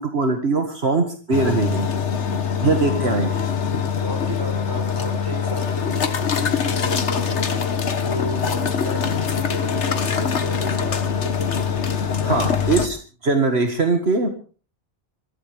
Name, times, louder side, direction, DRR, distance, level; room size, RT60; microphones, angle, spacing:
voice 1, 0.0-1.9 2.6-3.4 12.2-13.0 13.2-14.3, right 3 dB, 65° right, 4 dB, 2.1 m, -21 dB
sound 1, 1.3-12.9, left 7 dB, 80° left, 1.6 m, -23 dB
voice 2, 2.7-3.0 4.0-7.6 8.0-11.6, equal, 20° right, 5 dB, 4.7 m, -33 dB
23.5 x 16.0 x 3.4 m, 0.38 s
omnidirectional pair, 1.2 m